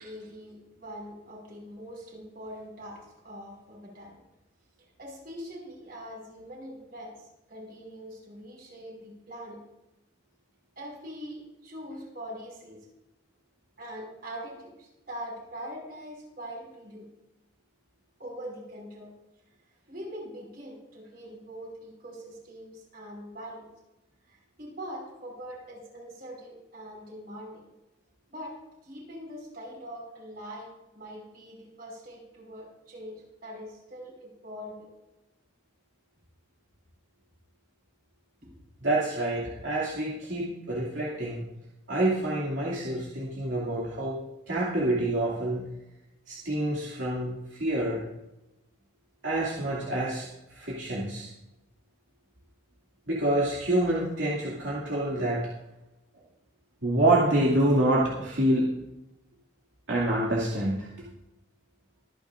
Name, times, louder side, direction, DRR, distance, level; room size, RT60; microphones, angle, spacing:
voice 1, 0.0-4.2 5.0-9.6 10.8-12.9 13.8-17.1 18.2-19.1 19.9-23.7 24.2-27.6 28.3-28.6 28.8-34.9 39.2-39.6, equal, 50° right, -2 dB, 5.5 m, -43 dB
voice 2, 38.8-41.5 41.9-44.2 44.5-45.6 46.3-48.0 49.2-51.3 53.1-55.5 56.8-58.7 59.9-60.9, right 1 dB, 75° right, -6 dB, 2.5 m, -27 dB
24.0 x 9.7 x 2.5 m, 0.95 s
head